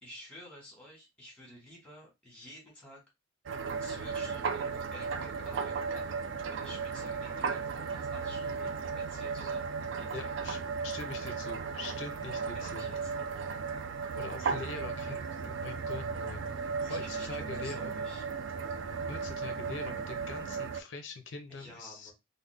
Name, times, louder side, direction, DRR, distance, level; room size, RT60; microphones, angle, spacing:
voice 1, 0.0-3.0 3.8-9.7 10.0-10.3 12.5-13.1 16.9-18.3 21.5-22.1, left 1 dB, 5° left, -2 dB, 1.5 m, -51 dB
sound 1, 3.5-20.8, right 5 dB, 70° right, 0.4 m, -35 dB
voice 2, 10.1-12.9 14.1-17.9 19.1-22.1, left 4 dB, 65° left, 7 dB, 0.5 m, -43 dB
3.6 x 2.1 x 3.2 m, 0.22 s
head